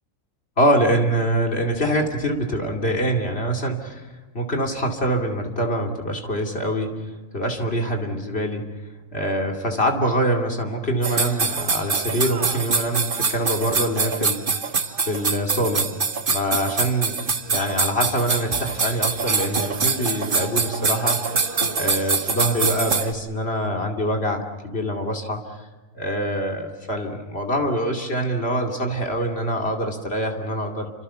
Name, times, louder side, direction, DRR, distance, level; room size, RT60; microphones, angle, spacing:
voice 1, 0.6-8.6 9.1-14.4 15.1-15.9 16.3-17.2 17.5-21.2 21.7-25.7 25.9-30.9, right 1 dB, 45° left, 1 dB, 2.9 m, -24 dB
sound 1, 11.0-23.1, right 5 dB, 40° right, 1.2 m, -24 dB
30.0 x 25.5 x 5.8 m, 1.2 s
omnidirectional pair, 1.4 m